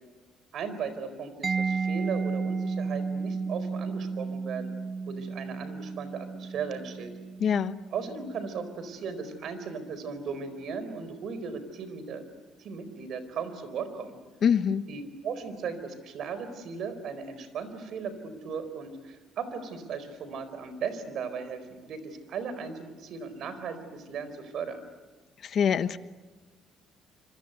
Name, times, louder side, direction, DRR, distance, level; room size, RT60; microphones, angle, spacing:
voice 1, 0.5-4.7 5.1-7.1 7.9-12.2 12.6-14.2 14.9-24.8, right 5 dB, 60° right, 11 dB, 4.4 m, -37 dB
Mallet percussion, 1.4-9.0, right 4 dB, 30° right, 1.0 m, -33 dB
voice 2, 7.4-7.8 14.4-14.8 25.4-26.0, left 7 dB, 50° left, 12 dB, 1.2 m, -24 dB
26.5 x 26.5 x 8.2 m, 1.3 s
cardioid pair, 125°, 0 cm